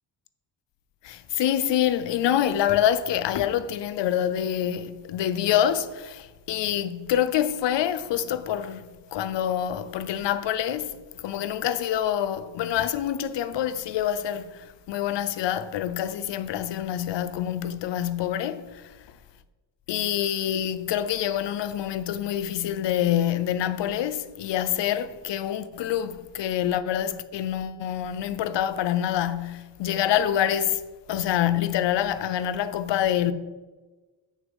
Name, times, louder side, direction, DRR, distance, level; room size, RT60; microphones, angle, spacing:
voice 1, 1.0-11.0 11.2-14.5 14.9-18.8 19.9-30.8 31.1-33.3, left 10 dB, 70° left, 0.7 m, -26 dB
7.2 x 6.4 x 5.0 m
cardioid pair, 145°, 45 cm